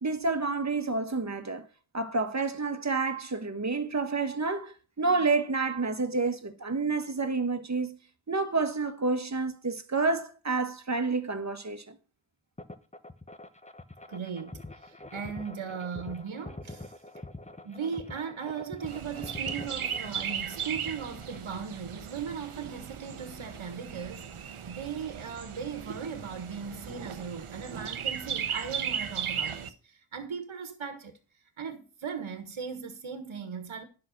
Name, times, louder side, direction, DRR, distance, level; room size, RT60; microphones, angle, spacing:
voice 1, 0.0-1.6 1.9-8.0 8.3-11.9, right 3 dB, 35° right, 1.4 m, -29 dB
sound 1, 12.6-21.5, left 2 dB, 15° left, 1.0 m, -45 dB
voice 2, 14.1-17.0 17.6-31.1 31.6-33.8, right 6 dB, 65° right, 1.5 m, -38 dB
Chirp tweet, 18.9-29.7, right 8 dB, 85° right, 1.0 m, -36 dB
11.0 x 6.0 x 6.5 m
wide cardioid pair, 70°, 49 cm